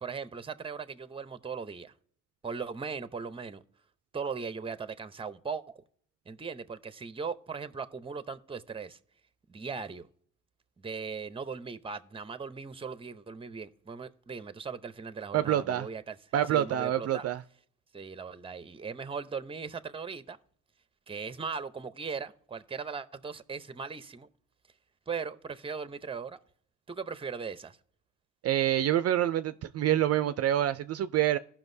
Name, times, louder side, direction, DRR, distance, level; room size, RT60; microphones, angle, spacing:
voice 1, 0.0-1.9 2.4-3.6 4.1-5.7 6.3-9.0 9.5-10.1 10.8-16.2 16.5-17.3 17.9-20.4 21.1-24.3 25.1-26.4 26.9-27.8, right 5 dB, 20° right, 0.7 m, -38 dB
voice 2, 15.3-15.9 16.3-17.4 28.4-31.4, right 12 dB, 55° right, 0.4 m, -27 dB
16.5 x 5.8 x 2.7 m
cardioid pair, 90°, 30 cm